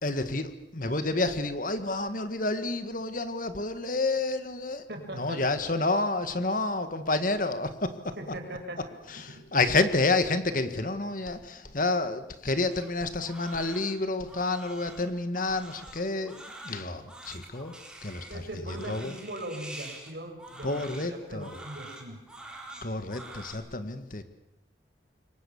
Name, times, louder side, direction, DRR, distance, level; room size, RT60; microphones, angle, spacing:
voice 1, 0.0-4.8 5.1-8.1 9.1-17.7 18.0-18.4 18.9-19.2 20.6-21.5 22.8-24.2, left 2 dB, 45° left, 10 dB, 1.8 m, -29 dB
voice 2, 4.9-5.4 8.2-8.8 9.3-9.5 18.3-22.2, right 1 dB, 60° right, 3 dB, 6.1 m, -40 dB
Crying sobbing, 12.7-23.5, right 2 dB, 5° right, 3.9 m, -46 dB
27.0 x 23.5 x 7.2 m, 0.86 s
head